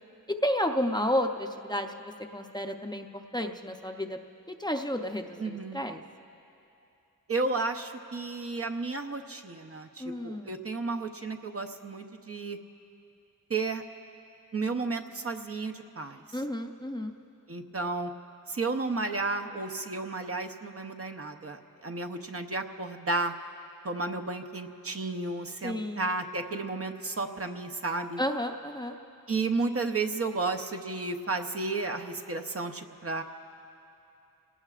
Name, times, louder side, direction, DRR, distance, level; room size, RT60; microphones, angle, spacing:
voice 1, 0.3-4.2 4.5-6.0 10.0-10.5 16.3-17.1 25.6-26.1 28.2-29.0, equal, 10° left, 4 dB, 0.7 m, -31 dB
voice 2, 5.4-5.9 7.3-12.6 13.5-13.8 14.5-16.2 17.5-18.1 18.5-23.3 23.8-28.2 29.3-33.2, right 3 dB, 40° right, 6 dB, 0.8 m, -32 dB
29.5 x 18.0 x 2.5 m, 2.8 s
wide cardioid pair, 105°, 35 cm